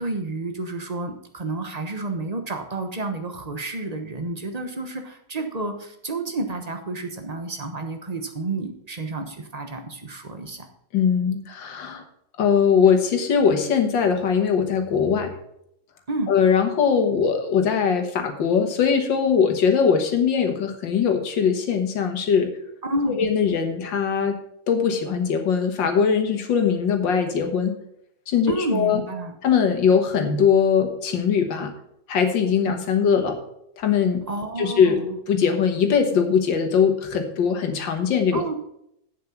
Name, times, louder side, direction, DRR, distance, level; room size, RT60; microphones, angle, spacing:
voice 1, 0.0-10.7 16.1-16.3 22.8-23.2 28.5-29.4 34.3-35.2 38.3-38.5, right 2 dB, 25° right, 6 dB, 0.9 m, -30 dB
voice 2, 10.9-12.0 12.4-15.3 16.3-22.5 23.2-24.4 24.7-27.7 28.3-29.0 29.4-31.7 32.1-33.4 33.8-34.2 34.6-35.0 35.3-38.4, left 6 dB, 85° left, 5 dB, 2.0 m, -21 dB
8.4 x 7.5 x 5.8 m, 0.75 s
omnidirectional pair, 2.0 m